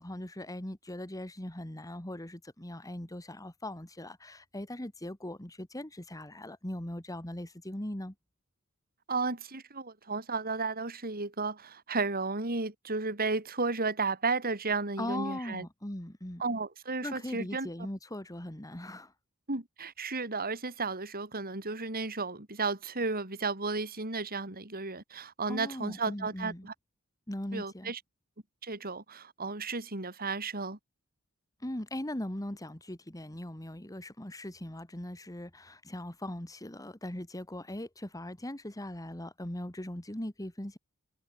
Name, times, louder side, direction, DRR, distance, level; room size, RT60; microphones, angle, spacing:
voice 1, 0.0-8.1 15.0-16.4 17.0-19.1 25.5-26.7 27.3-27.9 31.6-40.8, left 1 dB, 15° left, 2.0 m, -40 dB
voice 2, 9.1-15.7 16.4-17.7 19.5-26.7 27.5-28.0 28.6-30.8, right 3 dB, 45° right, 4.5 m, -33 dB
head